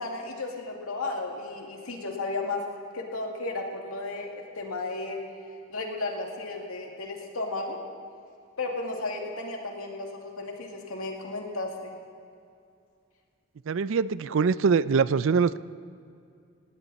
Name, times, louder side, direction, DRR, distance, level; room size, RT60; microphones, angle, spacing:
voice 1, 0.0-2.6 2.9-5.2 5.7-7.8 8.6-12.0, left 2 dB, 85° left, 1 dB, 2.3 m, -34 dB
voice 2, 13.7-15.6, right 5 dB, 65° right, 17 dB, 0.4 m, -23 dB
19.0 x 17.5 x 4.1 m, 2.4 s
head